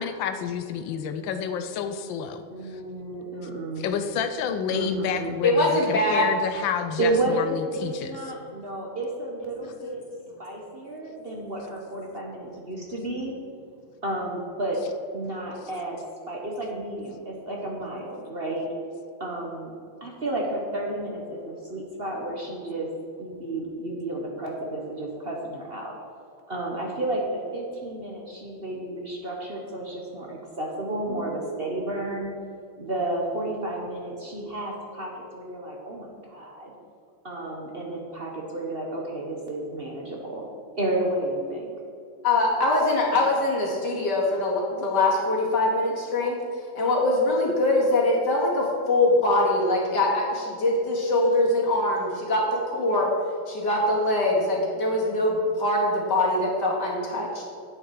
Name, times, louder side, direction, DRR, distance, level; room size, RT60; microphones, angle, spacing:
voice 1, 0.0-2.8 3.8-8.1, left 7 dB, 85° left, 8 dB, 1.4 m, -29 dB
voice 2, 2.5-3.9 4.7-5.4 7.0-10.0 10.4-13.3 14.0-14.8 15.1-16.0 16.3-18.7 19.2-19.7 20.0-22.9 23.2-25.9 26.5-32.3 32.8-36.7 37.2-40.4 40.7-41.7, right 1 dB, 35° right, -1 dB, 1.2 m, -31 dB
voice 3, 5.4-6.3 9.8-9.9 42.2-46.4 46.7-53.1 53.5-57.4, left 2 dB, 65° left, -2 dB, 2.7 m, -23 dB
9.6 x 9.0 x 4.7 m, 2.5 s
omnidirectional pair, 2.0 m